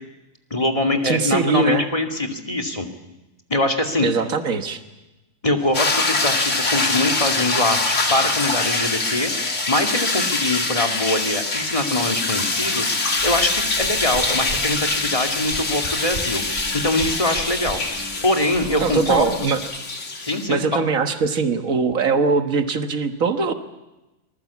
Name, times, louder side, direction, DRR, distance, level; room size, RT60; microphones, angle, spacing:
voice 1, 0.5-2.9 3.5-4.1 5.4-17.8 18.2-19.5 20.2-20.8, left 1 dB, 25° left, 4 dB, 2.4 m, -23 dB
voice 2, 1.0-1.9 4.0-4.8 18.8-19.6 20.5-23.5, right 5 dB, 80° right, 8 dB, 1.9 m, -21 dB
Solina Small Stone Chords, 5.6-10.7 12.3-19.6, left 3 dB, 90° left, 2.5 m, -42 dB
sound 1, 5.7-20.5, left 3 dB, 60° left, 2.9 m, -24 dB
sound 2, 13.1-19.8, right 1 dB, 50° right, 5.2 m, -38 dB
25.5 x 20.5 x 8.5 m, 1.0 s
omnidirectional pair, 1.4 m